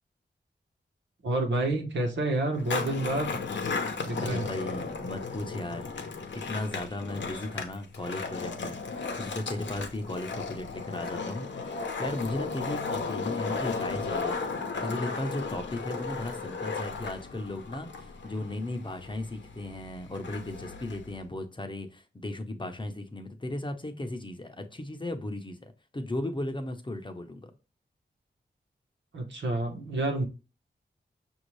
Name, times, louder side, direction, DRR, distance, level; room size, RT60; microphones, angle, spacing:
voice 1, 1.2-3.4 4.0-4.4 29.1-30.2, right 2 dB, 90° right, 1.2 m, -29 dB
Skateboard, 2.5-21.2, left 4 dB, 85° left, 0.8 m, -35 dB
voice 2, 4.2-5.9 6.3-14.5 14.8-27.5, left 1 dB, 25° left, 0.8 m, -36 dB
5.6 x 2.7 x 3.1 m
cardioid pair, 65°, 18 cm